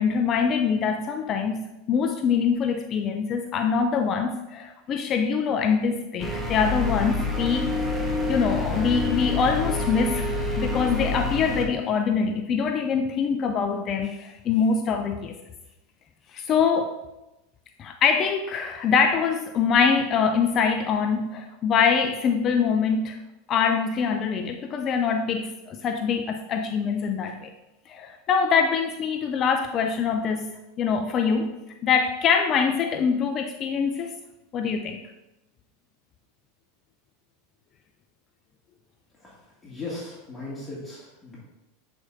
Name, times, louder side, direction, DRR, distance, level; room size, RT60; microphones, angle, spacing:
voice 1, 0.0-7.7 8.0-10.3 10.6-15.4 16.3-17.0 17.8-23.2 23.5-27.5 27.9-30.5 30.8-31.5 31.8-34.1 34.5-35.0, left 6 dB, 40° left, 6 dB, 0.4 m, -24 dB
sound 1, 6.2-11.7, left 2 dB, 5° right, 1.2 m, -27 dB
voice 2, 39.6-41.4, left 2 dB, 15° left, -7 dB, 2.1 m, -37 dB
8.7 x 4.6 x 2.6 m, 0.98 s
hypercardioid pair, 95°, 0 cm